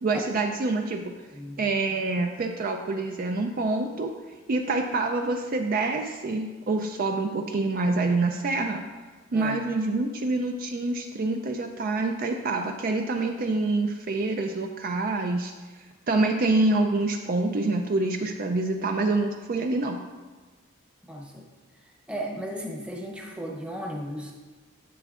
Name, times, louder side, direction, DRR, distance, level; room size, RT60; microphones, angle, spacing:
voice 1, 0.0-1.2 1.6-4.1 4.5-8.8 9.3-15.5 16.1-20.0, right 2 dB, 45° right, 4 dB, 0.4 m, -26 dB
voice 2, 21.1-21.5 22.1-24.3, equal, 5° right, -1 dB, 0.8 m, -35 dB
10.0 x 7.2 x 2.4 m, 1.3 s
head